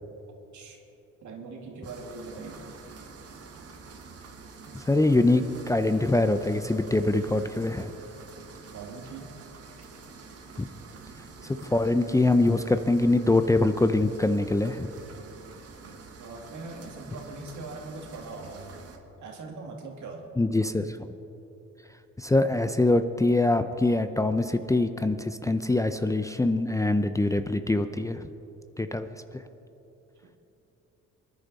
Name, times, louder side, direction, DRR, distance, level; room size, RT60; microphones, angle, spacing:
voice 1, 1.2-2.6 8.7-9.3 15.8-18.8 19.2-20.3 25.4-25.5 30.2-30.4, right 3 dB, 70° right, 1 dB, 2.3 m, -41 dB
sound 1, 1.8-19.0, right 4 dB, 55° right, 1.5 m, -47 dB
voice 2, 4.7-7.9 10.6-10.7 11.7-14.9 20.4-21.1 22.2-28.2 28.8-29.1, left 2 dB, 10° left, 9 dB, 0.5 m, -24 dB
24.0 x 10.5 x 4.1 m, 2.9 s
cardioid pair, 90°, 30 cm